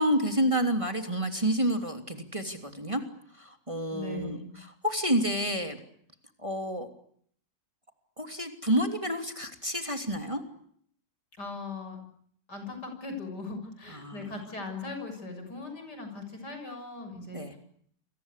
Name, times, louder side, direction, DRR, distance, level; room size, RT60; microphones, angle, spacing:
voice 1, 0.0-3.0 3.3-5.8 6.4-6.9 8.2-10.4 13.9-14.3 17.3-17.5, equal, 15° right, 6 dB, 3.1 m, -29 dB
voice 2, 3.9-4.5 11.4-12.0 12.5-17.6, left 3 dB, 70° left, 6 dB, 7.6 m, -39 dB
29.5 x 23.5 x 8.4 m, 0.65 s
omnidirectional pair, 1.9 m